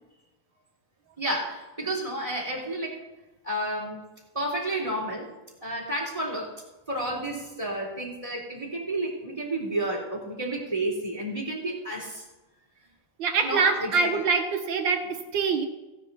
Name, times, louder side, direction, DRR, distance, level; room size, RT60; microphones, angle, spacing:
voice 1, 1.2-3.0 3.4-4.0 4.3-5.3 5.6-6.5 6.9-12.2 13.4-14.1, right 1 dB, 15° right, -1 dB, 3.0 m, -31 dB
voice 2, 13.2-15.7, right 5 dB, 60° right, 5 dB, 1.8 m, -25 dB
17.0 x 9.7 x 4.1 m, 1.1 s
omnidirectional pair, 2.4 m